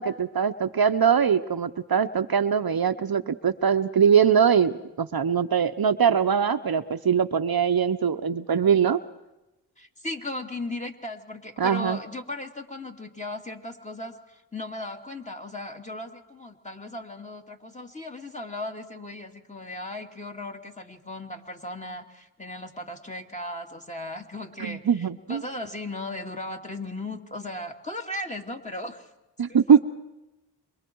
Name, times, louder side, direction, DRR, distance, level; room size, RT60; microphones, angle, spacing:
voice 1, 0.0-9.0 11.6-12.0 24.6-25.4 29.4-29.8, right 7 dB, 55° right, 8 dB, 0.9 m, -22 dB
voice 2, 9.8-29.1 29.5-29.8, left 1 dB, 15° left, 3 dB, 2.6 m, -37 dB
27.5 x 23.5 x 4.7 m, 1.0 s
cardioid pair, 40°, 43 cm